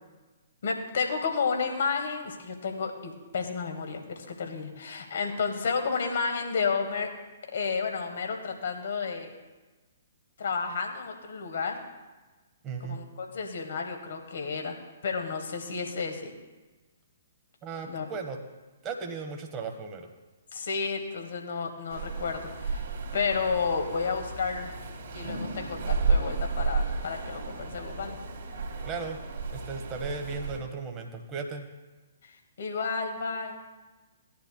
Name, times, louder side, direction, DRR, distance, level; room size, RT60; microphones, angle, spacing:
voice 1, 0.6-7.1 7.5-9.3 10.4-11.8 12.8-14.8 15.0-16.3 17.9-18.1 20.5-22.9 23.1-24.7 25.1-28.2 32.6-33.6, left 5 dB, 55° left, 3 dB, 1.8 m, -31 dB
voice 2, 12.6-13.0 17.6-18.4 18.8-20.1 28.8-29.2 29.5-31.7, right 4 dB, 20° right, 3 dB, 1.2 m, -36 dB
sound 1, 21.9-30.6, right 4 dB, 45° right, 2.3 m, -32 dB
17.5 x 10.5 x 2.3 m, 1.2 s
figure-of-eight pair, 120°, 0 cm